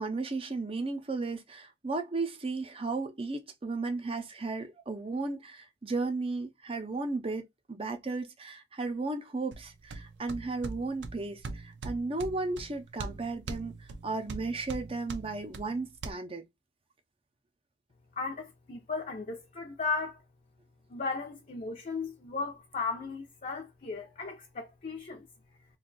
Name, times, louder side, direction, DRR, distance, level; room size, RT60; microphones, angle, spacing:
voice 1, 0.0-16.4, right 3 dB, 30° right, 0.6 m, -35 dB
sound 1, 9.5-16.1, right 3 dB, 90° right, 0.5 m, -42 dB
voice 2, 18.2-20.2 20.9-25.3, left 4 dB, 45° left, 0.6 m, -36 dB
2.6 x 2.3 x 3.9 m
head